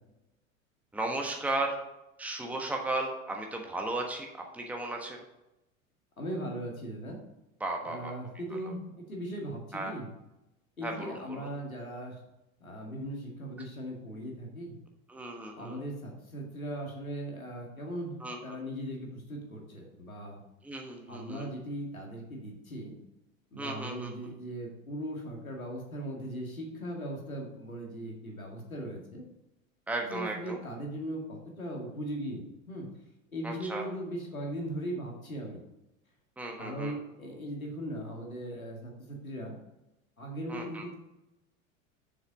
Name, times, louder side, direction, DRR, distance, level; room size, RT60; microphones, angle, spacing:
voice 1, 0.9-1.8 2.2-4.3 4.5-5.2 7.6-8.1 8.5-8.7 9.7-9.9 10.8-11.5 15.1-15.8 18.2-18.6 20.6-21.5 23.6-24.1 29.9-30.6 33.4-33.8 36.4-36.9 40.5-40.9, right 2 dB, 5° right, 1 dB, 1.2 m, -35 dB
voice 2, 6.2-7.2 7.8-8.8 9.1-10.1 10.8-12.2 12.6-14.8 15.6-20.4 21.1-23.0 23.5-29.2 30.1-32.4 32.7-32.9 33.3-35.6 36.6-39.6 40.2-40.9, right 1 dB, 85° left, 0 dB, 2.2 m, -38 dB
7.1 x 6.8 x 5.0 m, 0.93 s
figure-of-eight pair, 80°, 41 cm